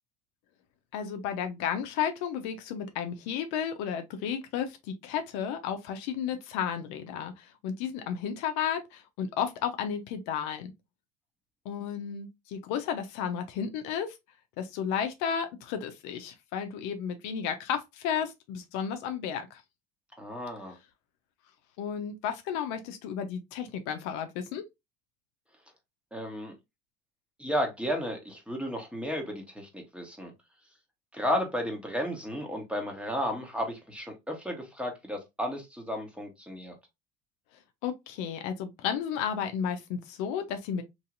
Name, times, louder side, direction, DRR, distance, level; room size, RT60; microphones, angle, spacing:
voice 1, 0.9-10.7 11.6-14.2 14.6-19.6 21.8-24.6 37.8-40.8, left 8 dB, 65° left, 0.7 m, -33 dB
voice 2, 20.2-20.8 26.1-26.5 27.4-30.3 31.1-36.8, equal, 5° right, 1.2 m, -33 dB
3.0 x 2.7 x 2.5 m
hypercardioid pair, 75°, 31 cm